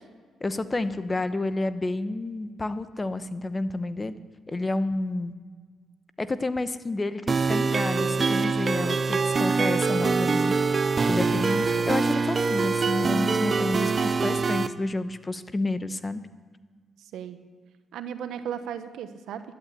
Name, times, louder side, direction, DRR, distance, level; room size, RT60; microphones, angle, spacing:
voice 1, 0.4-4.1 4.5-5.3 6.2-16.2, left 2 dB, 25° left, 12 dB, 1.0 m, -30 dB
sound 1, 7.3-14.7, right 4 dB, 40° right, 0.7 m, -24 dB
voice 2, 11.3-11.9 17.1-17.4 17.9-19.4, right 8 dB, 80° right, 10 dB, 1.1 m, -36 dB
12.5 x 11.5 x 8.4 m, 1.5 s
cardioid pair, 70°, 0 cm